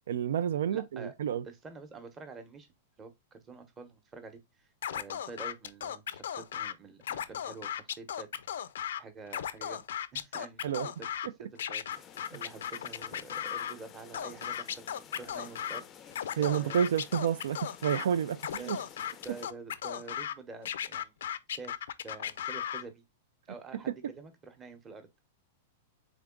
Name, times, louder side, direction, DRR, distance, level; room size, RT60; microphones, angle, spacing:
voice 1, 0.1-1.4 10.6-10.9 16.4-18.8, right 9 dB, 80° right, 0.3 m, -30 dB
voice 2, 0.7-1.1 1.4-2.7 3.0-8.3 8.6-8.7 9.0-9.9 10.1-10.7 11.0-16.8 18.6-18.8 19.2-21.2 21.6-21.8 22.0-23.0 23.5-25.2, right 4 dB, 20° right, 0.9 m, -48 dB
Scratching (performance technique), 4.8-6.7 7.0-9.0 9.3-11.3 11.6-13.7 14.1-15.8 16.1-18.1 18.4-20.3 20.7-22.8, left 9 dB, 85° left, 0.4 m, -36 dB
sound 1, 11.9-19.5, left 9 dB, 25° left, 0.5 m, -53 dB
3.7 x 3.4 x 3.6 m
supercardioid pair, 150°, 0 cm